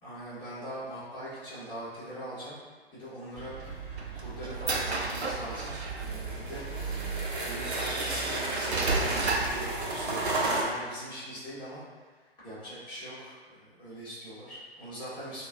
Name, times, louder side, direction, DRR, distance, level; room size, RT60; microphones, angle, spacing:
voice 1, 0.0-2.6 2.9-3.9 4.1-6.6 7.4-11.8 12.4-15.5, equal, 15° left, -11 dB, 1.5 m, -42 dB
sound 1, 3.3-10.6, right 3 dB, 55° right, 0.8 m, -34 dB
sound 2, 3.6-6.1 6.9-7.0 7.6-9.7, right 3 dB, 85° right, 0.5 m, -32 dB
4.7 x 2.3 x 2.6 m, 1.4 s
figure-of-eight pair, 120°, 32 cm